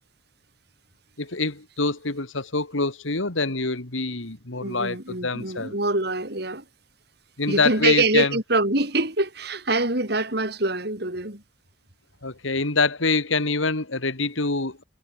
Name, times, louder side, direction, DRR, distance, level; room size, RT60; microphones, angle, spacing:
voice 1, 1.2-5.8 7.4-8.4 12.2-14.8, left 3 dB, 85° left, 2.5 m, -25 dB
voice 2, 4.6-6.6 7.5-11.4, right 2 dB, 55° right, 4.4 m, -24 dB
head